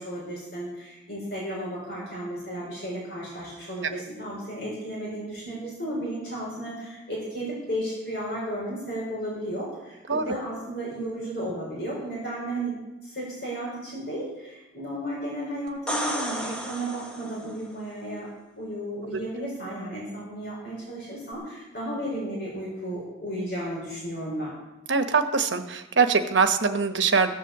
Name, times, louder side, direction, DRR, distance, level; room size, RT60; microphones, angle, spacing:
voice 1, 0.0-12.8 13.0-18.3 18.5-24.5, right 1 dB, 60° left, -4 dB, 5.0 m, -34 dB
sound 1, 15.7-17.6 21.3-21.4, equal, 5° left, 1.3 m, -32 dB
voice 2, 24.9-27.3, right 5 dB, 85° right, 8 dB, 1.1 m, -23 dB
15.5 x 7.6 x 7.3 m, 1.0 s
head